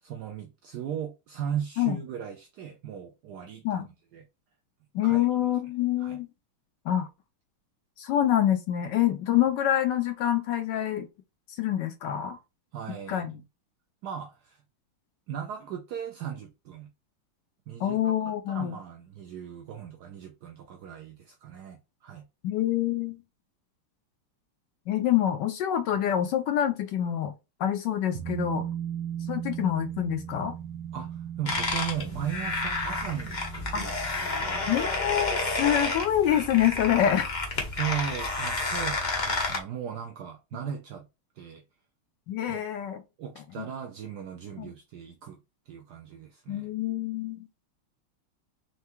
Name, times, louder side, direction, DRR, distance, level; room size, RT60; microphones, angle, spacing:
voice 1, 0.0-3.6 4.1-4.2 5.0-5.2 6.0-6.2 12.7-13.4 14.0-14.6 15.3-16.9 17.7-18.1 18.5-22.3 30.9-33.9 34.2-34.7 37.7-41.1 41.4-41.6 42.5-42.6 43.2-45.4 45.7-46.7, right 9 dB, 75° right, 0.9 m, -37 dB
voice 2, 4.9-6.3 6.9-7.1 8.0-11.1 11.5-12.4 13.1-13.3 17.8-18.8 22.4-23.2 24.9-27.3 27.6-28.7 29.3-30.5 33.7-33.9 34.7-37.3 42.3-43.0 43.6-43.7 44.6-44.7 46.5-47.5, left 11 dB, 75° left, 1.0 m, -26 dB
sound 1, 28.1-37.3 37.6-37.7, right 9 dB, 90° right, 1.8 m, -38 dB
sound 2, 31.5-39.6, left 3 dB, 45° left, 0.5 m, -30 dB
4.6 x 3.2 x 3.0 m
omnidirectional pair, 2.4 m